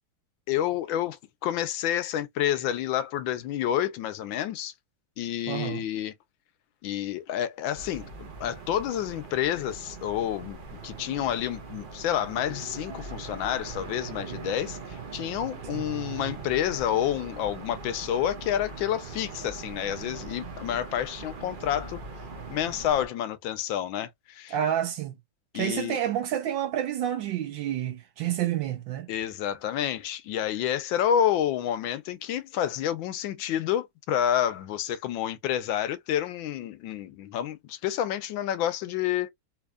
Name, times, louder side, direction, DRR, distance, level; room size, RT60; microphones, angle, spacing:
voice 1, 0.5-4.7 5.2-6.1 6.8-22.0 22.5-24.5 25.5-26.0 29.1-39.3, left 10 dB, 80° left, 1.4 m, -29 dB
voice 2, 5.5-5.8 15.7-15.8 24.5-25.1 25.5-29.1, right 10 dB, 75° right, 1.4 m, -29 dB
sound 1, 7.8-23.1, right 4 dB, 45° right, 0.6 m, -41 dB
4.3 x 2.7 x 2.3 m
omnidirectional pair, 2.1 m